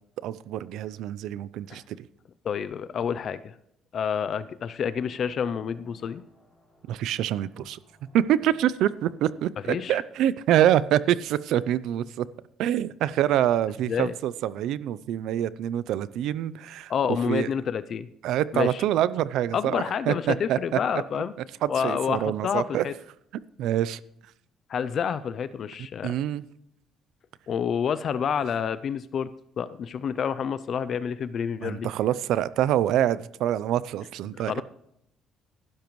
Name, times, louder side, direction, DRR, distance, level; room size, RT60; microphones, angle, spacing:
voice 1, 0.2-2.0 6.9-7.8 8.1-12.3 12.6-16.9 17.3-17.5 18.2-20.6 21.6-22.8 23.6-24.0 26.0-26.4 31.6-34.5, right 11 dB, 70° right, 18 dB, 0.5 m, -25 dB
voice 2, 2.4-3.5 3.9-6.2 9.7-10.0 13.9-14.1 16.9-18.1 18.5-18.8 19.5-21.3 21.7-22.9 24.7-26.2 27.5-29.3 29.6-31.9 34.3-34.6, left 7 dB, 40° left, 15 dB, 0.4 m, -28 dB
sound 1, 4.7-10.9, left 1 dB, 10° left, 4.5 m, -60 dB
15.5 x 12.0 x 3.1 m, 0.77 s
cardioid pair, 170°, 0 cm